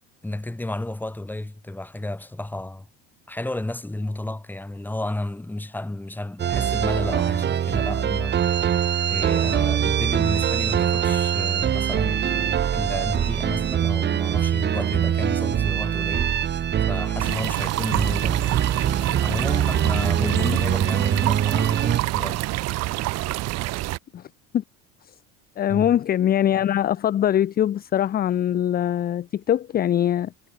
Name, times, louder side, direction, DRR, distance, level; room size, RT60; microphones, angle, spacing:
voice 1, 0.2-2.9 3.3-8.4 9.1-16.3 16.9-18.6 19.2-22.5 25.7-25.9, left 1 dB, 5° left, 2.5 m, -32 dB
sound 1, 6.4-22.0, right 9 dB, 30° right, 1.6 m, -23 dB
sound 2, 17.2-24.0, right 17 dB, 50° right, 1.0 m, -27 dB
voice 2, 20.2-20.6 24.1-24.2 24.5-24.6 25.6-30.3, left 10 dB, 30° left, 0.6 m, -22 dB
supercardioid pair, 120°, 33 cm